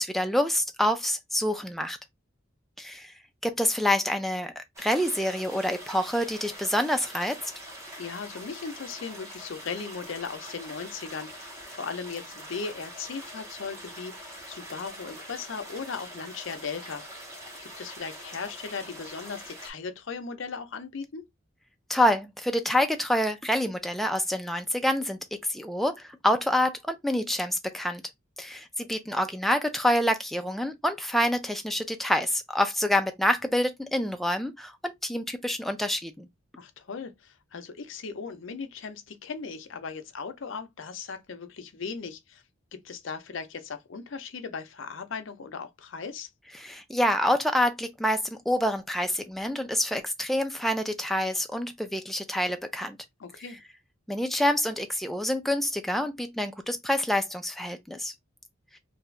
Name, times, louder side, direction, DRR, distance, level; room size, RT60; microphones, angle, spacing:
voice 1, 0.0-2.0 2.8-3.1 3.4-7.4 21.9-25.2 25.5-28.0 28.4-36.3 46.6-53.0 54.1-58.1, left 1 dB, ahead, 0.4 m, -27 dB
sound 1, 4.8-19.7, equal, 15° right, 0.8 m, -44 dB
voice 2, 8.0-17.0 17.6-21.2 36.6-42.4 42.7-46.3 53.2-53.6, left 5 dB, 70° left, 0.6 m, -38 dB
2.7 x 2.5 x 3.1 m
head